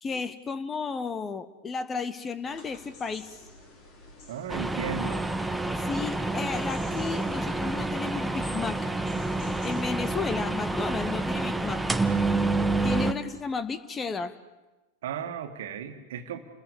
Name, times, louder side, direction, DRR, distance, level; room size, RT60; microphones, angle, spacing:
voice 1, 0.0-3.3 5.8-8.8 9.6-11.8 12.8-14.4, left 5 dB, 20° left, 14 dB, 1.1 m, -33 dB
sound 1, 2.4-9.8, left 2 dB, 45° left, 6.2 m, -49 dB
voice 2, 4.3-5.2 15.0-16.4, right 8 dB, 55° right, 7 dB, 1.9 m, -35 dB
sound 2, 4.5-13.1, right 2 dB, 5° right, 1.0 m, -28 dB
29.0 x 20.5 x 7.0 m, 1.1 s
figure-of-eight pair, 90°, 0 cm